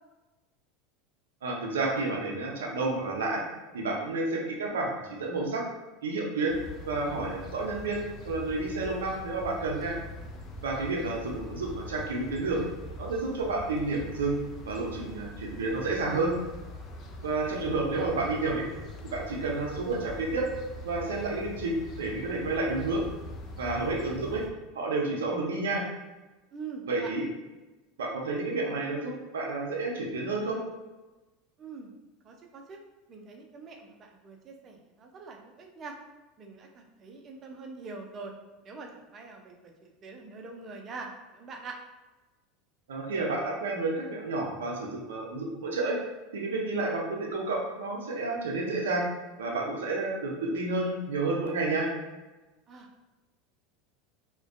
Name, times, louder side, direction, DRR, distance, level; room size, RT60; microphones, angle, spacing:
voice 1, 1.4-3.4 3.7-5.6 6.0-6.6 6.9-8.0 8.3-9.9 10.6-12.7 13.0-16.3 17.2-18.6 19.0-20.5 20.8-23.0 23.6-24.4 24.7-25.8 26.9-27.2 28.0-30.6 42.9-46.0 46.3-49.1 49.4-51.9, right 3 dB, 90° right, -1 dB, 0.5 m, -30 dB
sound 1, 6.5-24.5, left 1 dB, 45° left, 0.4 m, -43 dB
voice 2, 26.5-27.1 31.6-31.9 32.2-32.8 33.1-35.9 36.4-38.3 38.6-41.8 52.7-53.0, right 4 dB, 35° right, 2 dB, 0.5 m, -44 dB
2.4 x 2.2 x 2.4 m, 1.1 s
hypercardioid pair, 100°, 0 cm